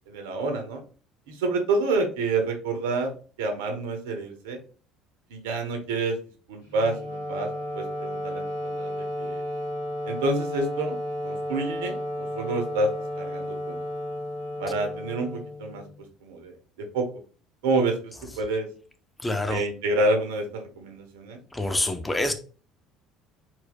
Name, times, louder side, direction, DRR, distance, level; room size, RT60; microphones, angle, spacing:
voice 1, 0.1-0.8 1.3-3.1 3.4-4.6 5.3-6.2 6.5-7.5 7.7-9.4 10.0-11.0 11.2-12.9 13.2-13.8 14.6-15.8 16.2-16.5 16.9-17.0 17.6-18.7 19.5-21.4, right 2 dB, 75° right, 5 dB, 1.0 m, -28 dB
Wind instrument woodwind instrument, 6.7-16.0, left 1 dB, 75° left, 1.9 m, -33 dB
voice 2, 19.2-19.6 21.5-22.3, left 2 dB, 15° left, 6 dB, 0.8 m, -26 dB
4.5 x 4.2 x 2.2 m, 0.38 s
hypercardioid pair, 60°, 0 cm